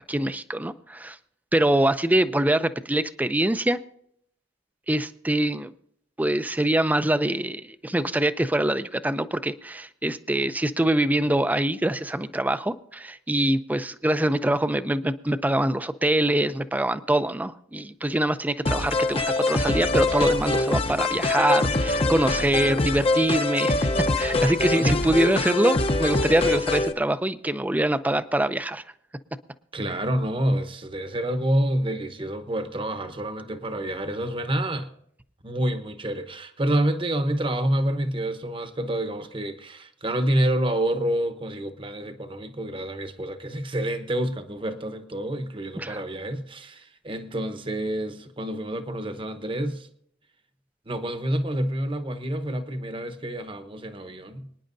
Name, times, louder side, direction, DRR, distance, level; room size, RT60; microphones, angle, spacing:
voice 1, 0.1-1.2 1.5-3.8 4.9-5.7 6.2-23.9 24.2-28.8 45.8-46.0, right 1 dB, 10° right, 0.4 m, -24 dB
sound 1, 18.7-26.9, left 2 dB, 30° left, 0.7 m, -24 dB
voice 2, 29.7-34.9 35.4-49.9 50.9-54.5, right 1 dB, 25° right, 0.9 m, -28 dB
25.0 x 10.0 x 2.6 m
head